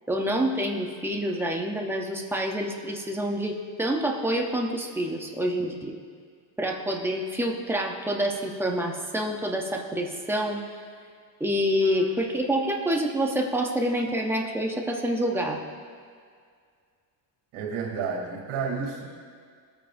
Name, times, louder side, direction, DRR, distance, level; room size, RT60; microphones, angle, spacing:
voice 1, 0.1-6.0 6.6-10.6 11.4-15.6, equal, 5° right, 0 dB, 0.6 m, -27 dB
voice 2, 17.5-19.1, right 5 dB, 80° right, -1 dB, 2.8 m, -31 dB
20.0 x 8.7 x 2.5 m, 2.1 s
cardioid pair, 175°, 47 cm